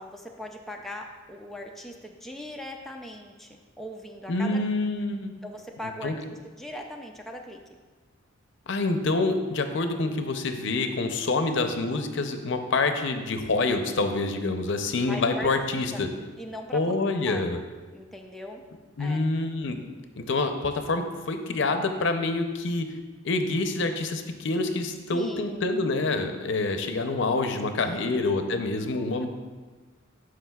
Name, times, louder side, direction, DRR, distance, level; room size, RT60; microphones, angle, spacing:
voice 1, 0.0-4.6 5.4-6.1 6.4-7.6 15.1-15.5 15.9-16.0 16.4-17.0 17.2-17.5 17.9-18.6 19.0-19.2 25.1-25.6 27.8-28.2 29.2-29.3, equal, ahead, 1 dB, 0.4 m, -39 dB
voice 2, 4.3-5.3 6.0-6.1 8.7-16.1 16.7-17.6 19.0-19.8 20.2-22.9 23.2-29.3, left 3 dB, 65° left, 7 dB, 0.6 m, -27 dB
12.0 x 4.9 x 2.3 m, 1.4 s
head